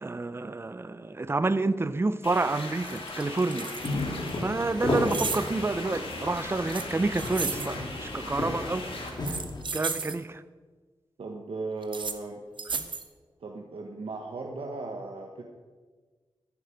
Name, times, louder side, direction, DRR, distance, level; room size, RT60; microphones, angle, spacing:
voice 1, 0.0-3.7 4.4-8.9 9.3-9.4 9.7-10.4 12.7-12.9, right 3 dB, 25° right, 14 dB, 0.6 m, -29 dB
sound 1, 2.2-9.1, left 2 dB, 85° left, 2.5 m, -39 dB
sound 2, 2.2-2.3 2.7-4.4 5.1-5.5 6.7-7.7 9.1-10.2 11.8-12.2 12.6-13.1, right 4 dB, 60° right, 1.0 m, -34 dB
sound 3, 3.8-9.6, left 1 dB, 50° left, 2.3 m, -33 dB
voice 2, 11.2-12.4 13.4-15.4, right 3 dB, 80° right, 1 dB, 1.3 m, -37 dB
14.5 x 10.5 x 5.1 m, 1.4 s
wide cardioid pair, 100°, 9 cm